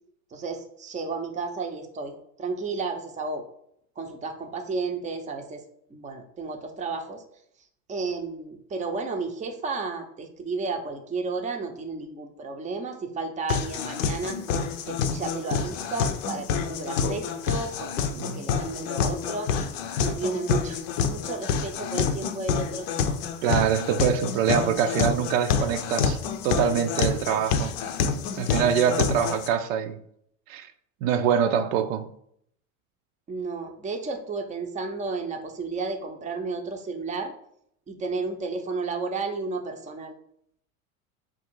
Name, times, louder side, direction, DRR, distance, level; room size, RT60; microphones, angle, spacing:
voice 1, 0.3-3.5 4.0-5.6 5.9-7.2 7.9-14.4 14.9-19.5 20.0-22.9 33.3-37.3 37.9-40.1, right 4 dB, 20° right, 0.6 m, -32 dB
sound 1, 13.5-29.5, left 6 dB, 65° left, 0.6 m, -28 dB
voice 2, 23.4-26.2 26.4-27.7 28.4-30.0 30.5-30.7 31.0-32.1, right 8 dB, 65° right, 0.5 m, -24 dB
3.6 x 2.5 x 4.5 m
hypercardioid pair, 95°, 42 cm